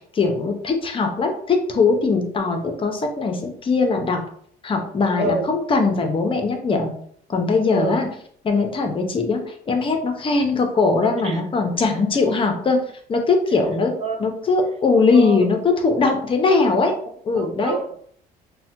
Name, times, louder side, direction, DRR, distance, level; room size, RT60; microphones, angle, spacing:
voice 1, 0.1-4.2 4.6-6.9 7.3-8.1 8.4-12.8 13.1-13.9 14.2-16.9 17.2-17.8, left 4 dB, 30° left, 4 dB, 0.5 m, -20 dB
voice 2, 5.2-5.5 7.7-8.0 11.2-11.4 13.5-13.7 14.0-14.2 15.1-15.5 17.3-18.1, right 3 dB, 40° right, 4 dB, 0.4 m, -27 dB
3.2 x 2.1 x 2.8 m, 0.62 s
cardioid pair, 110°, 17 cm